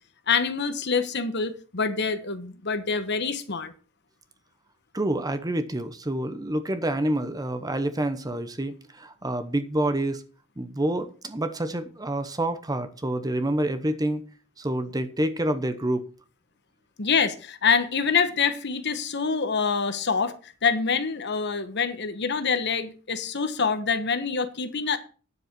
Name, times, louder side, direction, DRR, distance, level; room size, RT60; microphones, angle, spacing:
voice 1, 0.3-3.7 17.0-25.0, left 5 dB, 55° left, 1.2 m, -26 dB
voice 2, 4.9-10.2 10.6-14.2 14.6-16.1, right 1 dB, 20° right, 0.9 m, -27 dB
9.7 x 7.7 x 6.0 m
head